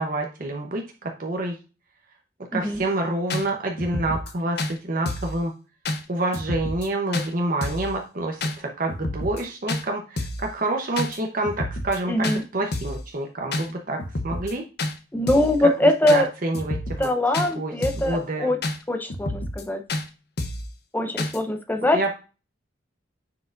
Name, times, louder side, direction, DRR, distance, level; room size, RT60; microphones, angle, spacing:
voice 1, 0.0-1.6 2.5-5.5 6.1-14.0 14.2-14.6 15.8-17.1 17.6-18.5 21.9-22.1, right 2 dB, 45° right, 2 dB, 0.9 m, -27 dB
sound 1, 2.7-2.8 3.3-3.4 3.8-4.3 4.6-4.7 5.1-5.4 5.9-6.0 6.3-6.9 7.1-7.3 7.6-7.9 8.4-8.6 8.9-9.4 9.7-9.8 10.2-10.5 11.0-11.2 11.4-12.0 12.2-12.4 12.7-13.0 13.5-13.7 14.0-14.5 14.8-14.9 15.3-15.6 16.1-16.2 16.5-17.1 17.3-17.5 17.8-18.1 18.6-18.8 19.1-19.6 19.9-20.0 20.4-20.7 21.2-21.4, left 2 dB, 55° left, 0.8 m, -29 dB
voice 2, 12.1-12.4 15.1-16.3 17.0-18.6 18.9-19.8 20.9-22.1, left 1 dB, 10° left, 6 dB, 0.7 m, -22 dB
9.5 x 4.8 x 2.5 m, 0.33 s
head